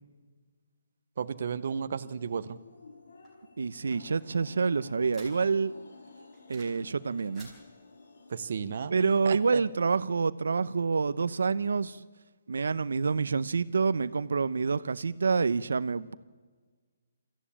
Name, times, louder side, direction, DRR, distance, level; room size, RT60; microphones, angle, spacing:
voice 1, 1.2-2.6 8.3-9.6, right 6 dB, 40° right, 0.8 m, -34 dB
sound 1, 2.0-8.8, left 3 dB, 80° left, 3.3 m, -52 dB
sound 2, 3.2-5.7 6.1-6.9 7.1-7.6, right 2 dB, 5° left, 4.8 m, -54 dB
voice 2, 3.6-5.7 6.5-7.5 8.9-12.0 12.5-16.1, right 5 dB, 80° right, 0.8 m, -27 dB
27.0 x 14.5 x 8.7 m
hypercardioid pair, 180°, 0 cm